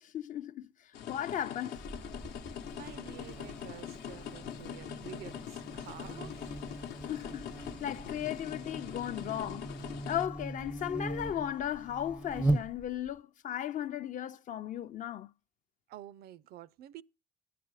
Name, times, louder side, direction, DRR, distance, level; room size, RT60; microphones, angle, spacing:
voice 1, 0.0-1.8 7.0-7.5 7.8-9.7 10.1-15.3, left 10 dB, 50° left, 0.5 m, -36 dB
sound 1, 0.9-10.3, left 9 dB, 80° left, 0.8 m, -43 dB
Buzz, 1.8-13.2, right 2 dB, 5° right, 0.4 m, -39 dB
voice 2, 2.7-6.5 15.9-17.0, right 13 dB, 70° right, 0.4 m, -49 dB
11.0 x 8.5 x 4.8 m
cardioid pair, 110°, 17 cm